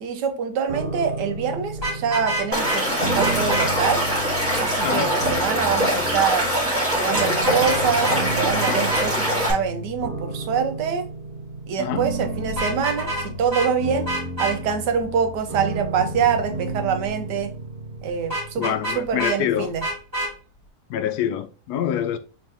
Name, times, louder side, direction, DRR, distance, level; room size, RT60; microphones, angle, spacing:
voice 1, 0.0-4.0 4.6-6.5 6.9-11.1 11.7-17.6 18.0-19.8, right 7 dB, 85° right, 1.4 m, -25 dB
sound 1, 0.7-19.6, right 2 dB, 50° right, 2.0 m, -32 dB
Vehicle horn car horn honking, 1.7-2.8 3.2-3.7 7.1-7.8 8.0-8.2 8.6-9.1 12.5-13.3 13.5-13.7 14.1-14.5 18.3-19.4 19.8-20.3, right 1 dB, 35° right, 2.7 m, -27 dB
Stream / Liquid, 2.5-9.5, equal, 10° right, 2.2 m, -23 dB
voice 2, 18.6-19.7 20.9-22.2, left 10 dB, 75° left, 1.1 m, -25 dB
4.3 x 3.8 x 3.3 m
omnidirectional pair, 1.8 m